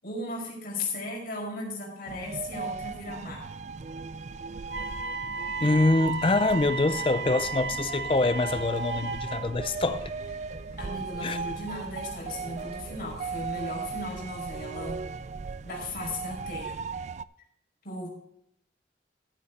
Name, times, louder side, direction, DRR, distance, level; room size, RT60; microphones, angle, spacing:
voice 1, 0.0-3.5 10.8-15.0 15.6-16.8 17.8-18.1, left 2 dB, 55° left, 5.3 m, -36 dB
sound 1, 2.1-17.2, right 5 dB, 40° right, 0.4 m, -37 dB
Wind instrument woodwind instrument, 4.7-9.5, right 3 dB, 75° right, 1.1 m, -35 dB
voice 2, 5.6-10.1 11.2-11.4, left 2 dB, 30° left, 0.5 m, -25 dB
sound 2, 8.4-13.7, equal, 75° left, 4.9 m, -51 dB
14.5 x 8.4 x 3.8 m
head